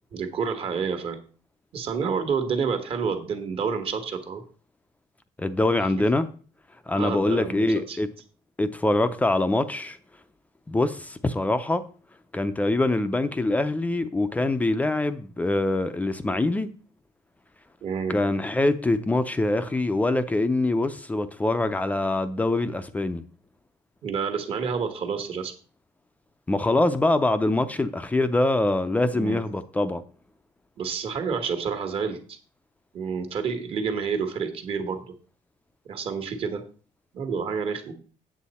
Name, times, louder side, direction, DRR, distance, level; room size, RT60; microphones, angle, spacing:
voice 1, 0.1-1.2 1.7-4.4 6.9-8.0 17.8-18.2 24.0-25.5 29.1-29.4 30.8-32.4 32.9-35.1 35.8-36.6 37.1-37.9, right 6 dB, 45° right, 1.5 m, -29 dB
voice 2, 5.4-6.3 6.9-8.1 8.6-10.0 10.7-11.8 12.3-16.7 18.1-23.2 26.5-30.0, left 2 dB, 10° left, 0.5 m, -24 dB
8.3 x 7.8 x 4.2 m
cardioid pair, 155°, 13 cm